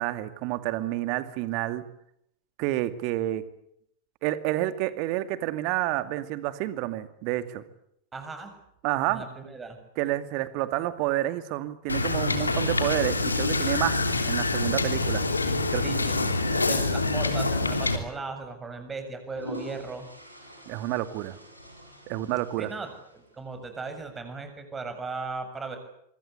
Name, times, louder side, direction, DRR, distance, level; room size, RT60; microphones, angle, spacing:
voice 1, 0.0-1.8 2.6-3.5 4.2-7.6 8.8-9.3 10.0-15.2 15.7-16.3 20.7-21.4 22.1-22.7, right 15 dB, 45° right, 12 dB, 2.2 m, -29 dB
voice 2, 8.1-8.5 9.1-9.8 15.8-16.2 16.5-20.1 22.6-22.9 23.4-25.8, right 4 dB, 15° right, 7 dB, 7.1 m, -37 dB
Wind / Boat Water vehicle, 11.9-18.0, left 2 dB, 80° left, 3.2 m, -26 dB
sound 1, 19.0-23.6, equal, 90° right, 7.3 m, -45 dB
25.5 x 24.5 x 8.4 m, 0.74 s
figure-of-eight pair, 90°, 0 cm